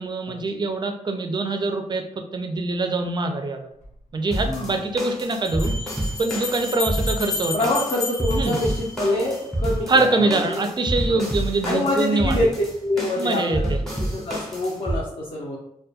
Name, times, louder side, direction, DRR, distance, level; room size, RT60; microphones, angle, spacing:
voice 1, 0.0-3.7 4.1-5.9 6.2-7.7 8.3-8.6 9.9-12.4 13.2-13.8, right 3 dB, 40° right, 6 dB, 0.3 m, -24 dB
Bell, 3.8-3.9 5.4-9.4, left 4 dB, 85° left, 0.9 m, -32 dB
sound 1, 4.3-15.0, right 1 dB, 5° left, 0.7 m, -28 dB
voice 2, 4.4-4.8 7.5-10.8 11.1-11.3 11.6-12.5 12.8-15.6, left 1 dB, 60° left, -5 dB, 0.5 m, -26 dB
2.3 x 2.1 x 2.7 m, 0.73 s
wide cardioid pair, 110°, 12 cm